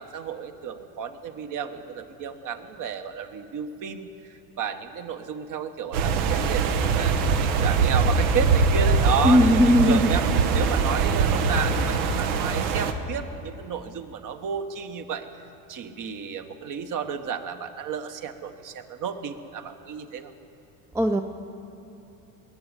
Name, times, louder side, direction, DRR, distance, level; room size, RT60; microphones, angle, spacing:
voice 1, 0.0-10.2 10.5-15.3 15.7-20.3, right 7 dB, 45° right, 7 dB, 1.2 m, -32 dB
sound 1, 5.9-12.9, right 4 dB, 80° right, 1.2 m, -22 dB
voice 2, 9.2-10.1 20.9-21.2, equal, 5° right, 6 dB, 0.5 m, -18 dB
20.0 x 7.0 x 9.7 m, 2.9 s
supercardioid pair, 105°, 43 cm